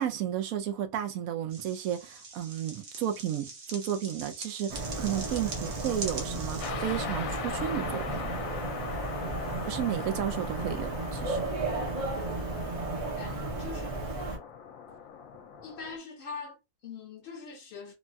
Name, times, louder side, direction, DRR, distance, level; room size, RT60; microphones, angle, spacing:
voice 1, 0.0-8.2 9.6-11.5, right 10 dB, 90° right, 1.0 m, -33 dB
sound 1, 1.5-6.7, right 3 dB, 60° right, 1.0 m, -42 dB
sound 2, 4.7-14.4, right 2 dB, 35° right, 0.5 m, -34 dB
sound 3, 6.6-16.0, left 7 dB, 80° left, 1.0 m, -40 dB
voice 2, 13.0-14.1 15.6-17.9, left 5 dB, 60° left, 0.8 m, -43 dB
3.2 x 2.2 x 2.5 m
omnidirectional pair, 1.4 m